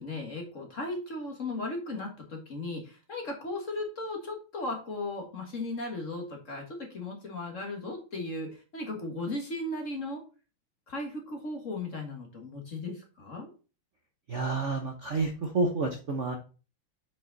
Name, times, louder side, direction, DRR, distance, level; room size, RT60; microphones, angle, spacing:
voice 1, 0.0-10.2 10.9-13.5, left 2 dB, 35° left, 2 dB, 1.9 m, -36 dB
voice 2, 14.3-16.3, right 3 dB, 45° right, 3 dB, 1.0 m, -29 dB
8.0 x 5.5 x 4.0 m, 0.34 s
omnidirectional pair, 2.4 m